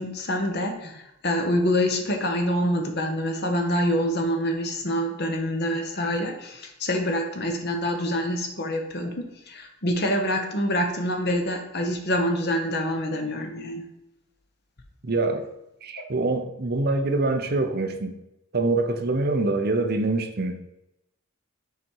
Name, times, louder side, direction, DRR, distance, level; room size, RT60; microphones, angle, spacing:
voice 1, 0.0-9.1 9.5-13.9 16.0-16.1, equal, 50° left, 4 dB, 1.1 m, -26 dB
voice 2, 15.0-15.4 15.8-18.2 18.5-20.7, right 2 dB, 45° right, 6 dB, 0.7 m, -25 dB
7.0 x 4.2 x 4.6 m, 0.88 s
head